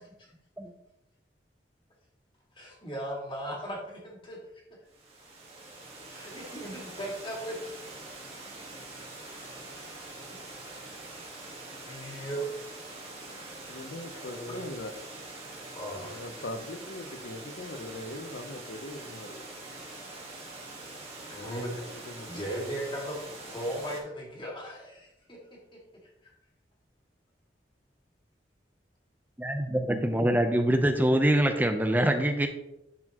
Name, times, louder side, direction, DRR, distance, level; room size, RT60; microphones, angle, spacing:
voice 1, 2.6-4.4 6.1-7.8 11.3-11.4 11.8-12.5 14.1-14.6 15.8-16.2 21.3-25.4, right 1 dB, 30° left, -2 dB, 1.9 m, -37 dB
Water, 4.9-24.0, right 2 dB, 35° right, 1.5 m, -44 dB
voice 2, 13.7-14.9 16.0-19.4 22.1-22.3, left 1 dB, 70° left, 8 dB, 0.8 m, -40 dB
voice 3, 29.4-32.5, right 1 dB, 10° right, 6 dB, 0.6 m, -24 dB
10.5 x 4.3 x 3.0 m, 0.85 s
head